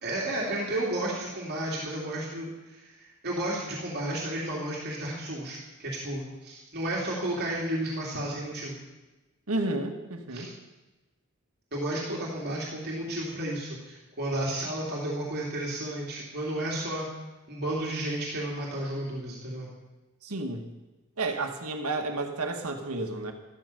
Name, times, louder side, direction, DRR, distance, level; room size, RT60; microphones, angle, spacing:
voice 1, 0.0-8.8 10.3-10.5 11.7-17.1 17.5-19.7, right 1 dB, 45° right, -4 dB, 3.0 m, -32 dB
voice 2, 9.5-10.5 20.2-20.6 21.2-23.3, right 2 dB, 80° right, 4 dB, 1.9 m, -31 dB
14.0 x 13.5 x 6.9 m, 1.1 s
head